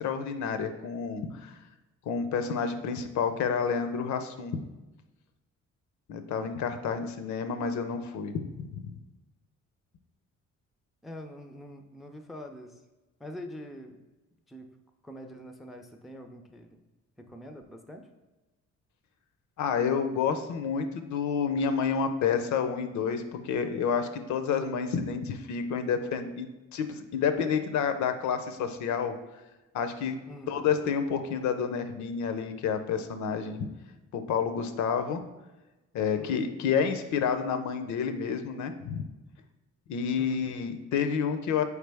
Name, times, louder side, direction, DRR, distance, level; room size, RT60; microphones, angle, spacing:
voice 1, 0.0-1.5 2.1-4.7 6.1-8.8 19.6-29.1 29.7-30.1 30.5-33.7 34.1-35.2 35.9-39.0 39.9-41.6, left 6 dB, 70° left, 9 dB, 0.5 m, -29 dB
voice 2, 11.0-12.8 13.2-14.0 14.5-14.7 15.0-16.8 17.2-18.1 30.2-30.6 36.2-36.5 40.2-40.4, equal, ahead, 5 dB, 0.3 m, -44 dB
4.6 x 3.3 x 3.3 m, 1.1 s
cardioid pair, 90°, 30 cm